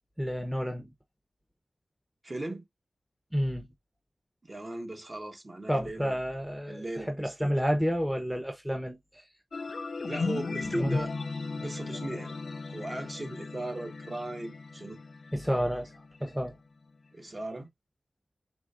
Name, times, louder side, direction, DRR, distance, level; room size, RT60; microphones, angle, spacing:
voice 1, 0.2-0.9 3.3-3.7 5.7-9.2 10.7-10.9 15.3-15.9 16.2-16.6, equal, 5° right, 0.9 m, -30 dB
voice 2, 2.2-2.6 4.4-6.2 6.7-7.5 10.1-11.1 11.6-12.4 12.7-15.0 17.1-17.7, right 1 dB, 35° right, 1.2 m, -37 dB
sound 1, 9.5-16.6, left 4 dB, 65° left, 0.3 m, -36 dB
5.0 x 3.4 x 2.5 m
wide cardioid pair, 105°, 0 cm